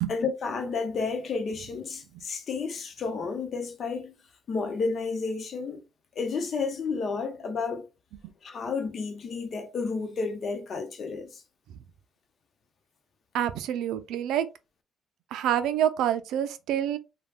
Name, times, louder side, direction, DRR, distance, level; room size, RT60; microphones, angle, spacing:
voice 1, 0.1-4.1 4.5-5.8 6.2-7.9 8.4-11.4, left 4 dB, 55° left, 0.8 m, -31 dB
voice 2, 13.3-14.5 15.3-17.0, right 10 dB, 90° right, 0.4 m, -27 dB
3.4 x 2.2 x 2.4 m
cardioid pair, 90°, 0 cm